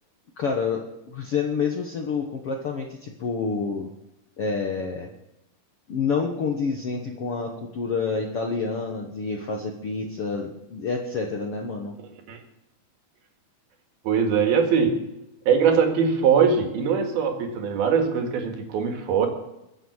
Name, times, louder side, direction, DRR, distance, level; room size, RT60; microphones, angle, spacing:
voice 1, 0.4-0.8 1.1-3.9 4.4-5.1 5.9-12.0, left 5 dB, 65° left, 1 dB, 1.5 m, -28 dB
voice 2, 14.1-15.0 15.5-19.3, right 6 dB, 75° right, 4 dB, 3.8 m, -21 dB
22.5 x 8.1 x 6.3 m, 0.90 s
omnidirectional pair, 4.4 m